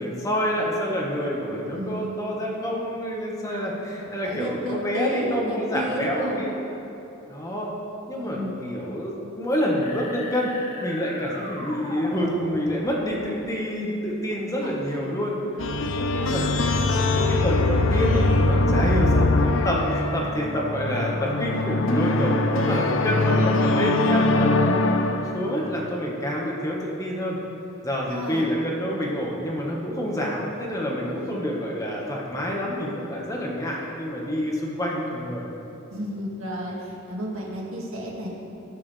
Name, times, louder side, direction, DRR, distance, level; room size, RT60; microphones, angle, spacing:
voice 1, 0.0-6.5 7.3-7.7 8.1-10.5 10.8-15.3 15.9-19.3 19.6-24.5 24.9-27.4 27.8-35.4, equal, 15° left, -3 dB, 1.5 m, -28 dB
voice 2, 1.7-2.3 4.0-6.4 8.1-8.6 14.6-15.0 15.9-16.5 18.7-18.9 28.1-28.5 31.1-31.4 35.9-38.3, equal, 80° right, -3 dB, 2.1 m, -32 dB
sound 1, 9.8-13.3, left 1 dB, 40° left, 2.4 m, -37 dB
sound 2, 15.6-25.6, left 2 dB, 65° left, 0.6 m, -22 dB
19.5 x 6.9 x 3.4 m, 2.9 s
head